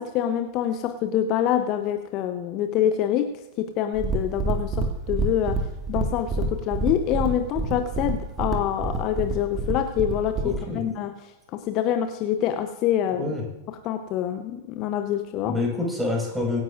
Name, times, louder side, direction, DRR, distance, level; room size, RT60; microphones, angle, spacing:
voice 1, 0.0-3.3 3.6-5.6 5.9-11.1 11.5-13.3 13.8-15.6, left 10 dB, 35° left, 8 dB, 0.9 m, -26 dB
sound 1, 3.9-10.6, right 3 dB, 20° right, 1.9 m, -28 dB
voice 2, 10.4-10.8 13.1-13.4 15.4-16.6, left 2 dB, 5° right, -2 dB, 5.5 m, -27 dB
24.5 x 9.8 x 2.6 m, 0.99 s
figure-of-eight pair, 95°, 0 cm